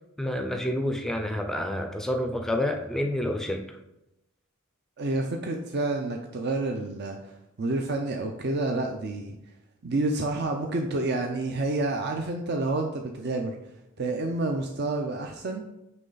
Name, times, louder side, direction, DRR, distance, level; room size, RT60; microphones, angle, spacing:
voice 1, 0.2-3.8, left 1 dB, ahead, 4 dB, 0.4 m, -28 dB
voice 2, 5.0-9.4 9.8-13.6 14.0-15.7, right 2 dB, 50° right, 3 dB, 0.5 m, -29 dB
9.2 x 3.3 x 3.9 m, 0.90 s
head